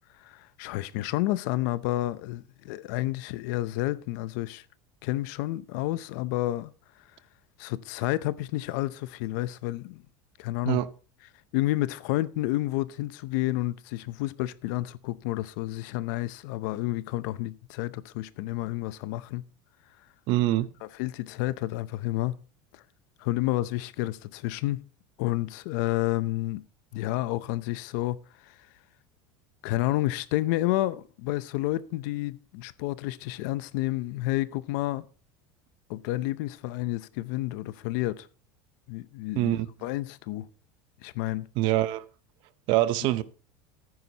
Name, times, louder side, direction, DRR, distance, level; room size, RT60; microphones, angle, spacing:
voice 1, 0.2-4.6 5.0-6.7 7.6-10.0 10.4-10.8 11.5-19.4 20.8-22.3 22.7-22.8 23.2-24.9 25.2-26.6 26.9-28.6 29.6-35.1 35.9-38.3 38.9-40.5 41.0-41.5, left 16 dB, 65° left, 0.7 m, -30 dB
voice 2, 20.3-20.7 39.3-39.7 41.6-42.0 42.7-43.2, right 15 dB, 50° right, 0.7 m, -24 dB
14.0 x 9.6 x 2.9 m
cardioid pair, 165°, 11 cm